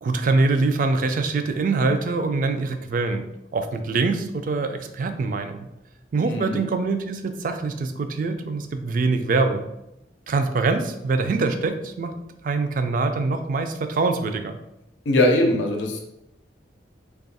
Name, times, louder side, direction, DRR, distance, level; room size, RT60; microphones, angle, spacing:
voice 1, 0.0-3.2 3.5-5.7 6.1-9.7 10.3-12.1 12.4-14.6, right 3 dB, 50° right, 7 dB, 0.3 m, -24 dB
voice 2, 6.2-6.6 15.1-16.0, left 1 dB, 90° left, 2 dB, 0.5 m, -21 dB
2.8 x 2.3 x 4.0 m, 0.86 s
head